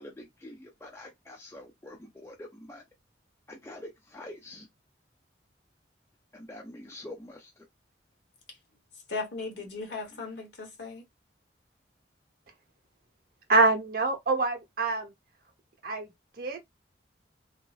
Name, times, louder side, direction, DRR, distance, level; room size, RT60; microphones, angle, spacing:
voice 1, 0.0-2.8 3.5-4.7 6.3-7.7 9.9-10.2, left 1 dB, 15° left, 0.4 m, -46 dB
voice 2, 9.1-11.0, left 3 dB, 70° left, 1.0 m, -37 dB
voice 3, 13.5-15.1 15.8-16.1 16.4-16.6, right 3 dB, 55° right, 0.8 m, -25 dB
2.9 x 2.5 x 2.3 m
head